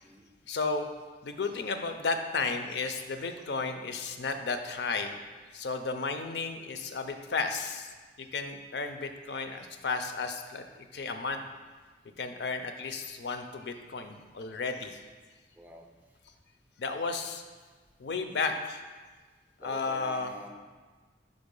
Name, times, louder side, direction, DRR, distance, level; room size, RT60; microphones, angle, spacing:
voice 1, 0.5-0.9 1.2-5.1 5.5-11.4 12.2-15.0 16.8-17.4 18.0-18.8 19.6-20.3, left 4 dB, 70° left, 7 dB, 0.5 m, -33 dB
voice 2, 15.6-15.9 19.6-20.5, right 1 dB, 10° right, 2 dB, 0.4 m, -46 dB
5.1 x 4.0 x 5.3 m, 1.4 s
head